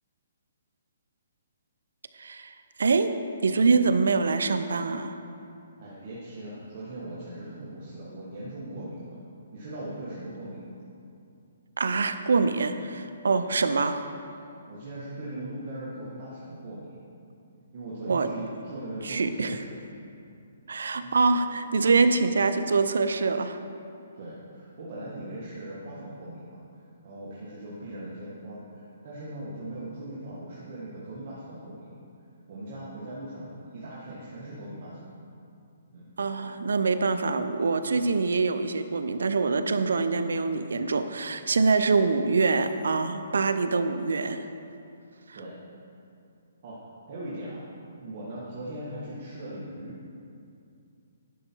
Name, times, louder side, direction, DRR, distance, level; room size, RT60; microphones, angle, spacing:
voice 1, 2.2-5.1 11.8-14.1 18.0-18.3 19.0-19.6 20.7-23.6 36.2-44.4 45.3-45.4, right 4 dB, 85° right, 10 dB, 0.5 m, -25 dB
voice 2, 5.8-9.2 9.5-10.8 14.7-16.9 17.7-19.7 20.9-21.1 24.1-26.6 27.0-31.8 32.5-35.1 35.9-36.1 45.3-45.6 46.6-46.8 47.1-47.6 48.0-49.9, right 1 dB, 45° right, -8 dB, 1.5 m, -39 dB
11.0 x 5.5 x 4.5 m, 2.6 s
hypercardioid pair, 160°, 0 cm